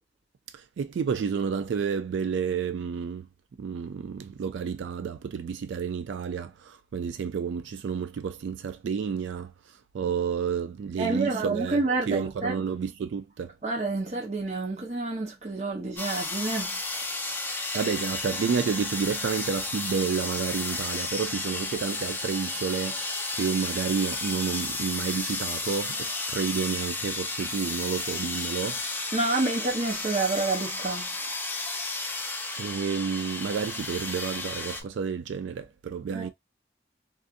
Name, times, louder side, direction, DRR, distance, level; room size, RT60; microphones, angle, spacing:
voice 1, 0.5-3.3 3.6-9.5 9.9-11.8 12.1-13.5 17.7-23.1 23.3-28.8 32.6-36.3, right 6 dB, 85° right, 0.3 m, -30 dB
voice 2, 11.0-12.6 13.6-16.8 29.1-31.2 36.1-36.3, right 3 dB, 40° right, 0.9 m, -28 dB
sound 1, 16.0-34.8, left 3 dB, 10° left, 0.3 m, -33 dB
2.6 x 2.5 x 2.4 m
head